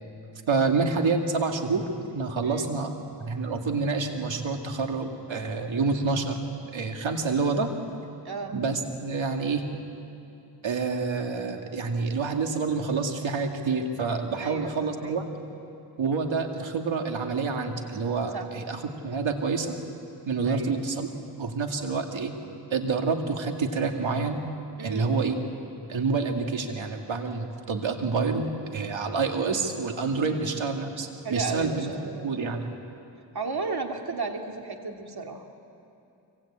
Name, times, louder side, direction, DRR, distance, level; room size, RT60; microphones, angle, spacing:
voice 1, 0.5-1.9 2.1-2.9 3.2-6.4 6.7-7.7 8.5-9.6 10.6-15.3 16.0-19.7 20.3-21.1 21.4-22.3 22.7-24.5 24.8-25.3 25.9-28.5 28.7-31.9 32.2-32.6, right 4 dB, 85° right, 4 dB, 2.2 m, -28 dB
voice 2, 8.2-8.6 14.4-15.2 18.3-18.5 20.5-20.8 24.8-25.1 30.3-30.4 31.2-32.3 33.3-35.5, right 4 dB, 55° right, 3 dB, 2.5 m, -34 dB
24.5 x 24.0 x 8.8 m, 2.7 s
cardioid pair, 65°, 45 cm